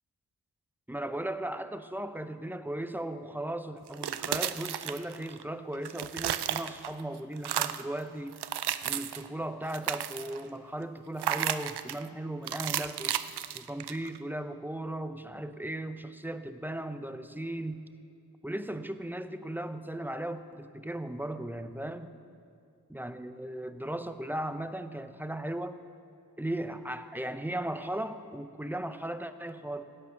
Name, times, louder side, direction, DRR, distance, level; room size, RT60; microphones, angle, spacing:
voice 1, 0.9-8.4 8.8-13.1 13.5-17.8 18.4-22.1 22.9-25.8 26.4-29.8, right 1 dB, 5° right, 10 dB, 0.6 m, -37 dB
sound 1, 3.9-5.4 5.7-7.0 7.4-7.9 8.3-9.3 9.6-10.4 11.2-12.0 12.5-14.2, right 11 dB, 85° right, 0.5 m, -33 dB
16.5 x 8.8 x 5.9 m, 2.4 s
wide cardioid pair, 85°, 39 cm